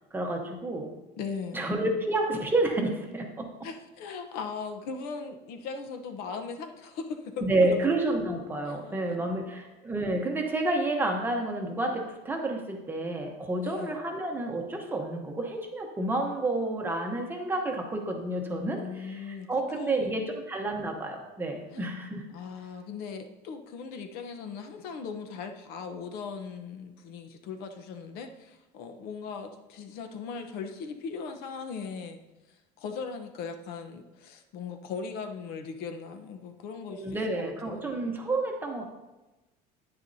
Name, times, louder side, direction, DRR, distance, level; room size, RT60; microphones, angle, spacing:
voice 1, 0.1-0.9 1.5-3.5 7.4-22.2 36.9-38.8, right 2 dB, 10° right, 2 dB, 0.9 m, -30 dB
voice 2, 1.2-1.7 3.6-7.6 8.6-9.0 13.6-14.0 18.8-19.5 19.7-20.2 21.7-21.9 22.3-32.2 32.5-37.9, left 5 dB, 60° left, 5 dB, 0.9 m, -39 dB
10.0 x 9.6 x 2.7 m, 1.1 s
cardioid pair, 180°, 18 cm